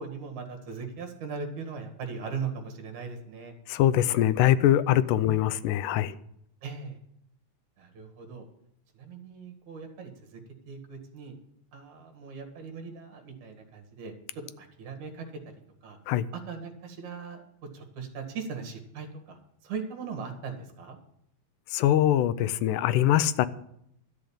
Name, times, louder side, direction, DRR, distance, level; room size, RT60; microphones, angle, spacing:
voice 1, 0.0-3.5 5.3-5.4 6.6-7.0 7.8-8.5 8.9-11.4 11.7-15.3 15.8-16.0 16.3-17.4 17.7-21.0, right 5 dB, 70° right, 5 dB, 3.2 m, -39 dB
voice 2, 3.7-6.1 16.1-16.3 21.7-23.5, left 12 dB, 85° left, 15 dB, 2.2 m, -23 dB
12.5 x 6.6 x 8.6 m, 0.74 s
omnidirectional pair, 3.6 m